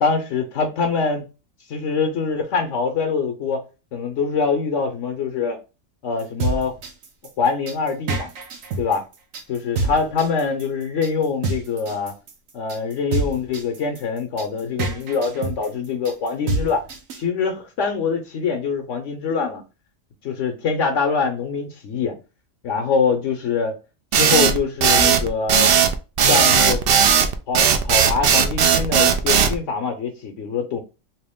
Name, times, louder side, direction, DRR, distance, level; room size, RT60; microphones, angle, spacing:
voice 1, 0.0-1.2 1.7-3.6 3.9-5.6 6.0-6.7 7.4-8.3 8.8-9.0 9.5-12.1 12.5-16.8 17.2-19.6 20.2-22.2 22.6-23.8 24.1-25.7 26.3-26.8 27.5-30.8, left 5 dB, 70° left, 1.0 m, -24 dB
sound 1, 6.2-17.2, right 3 dB, 85° right, 1.2 m, -27 dB
sound 2, 24.1-29.5, right 7 dB, 60° right, 0.6 m, -16 dB
3.0 x 2.9 x 3.5 m
omnidirectional pair, 1.3 m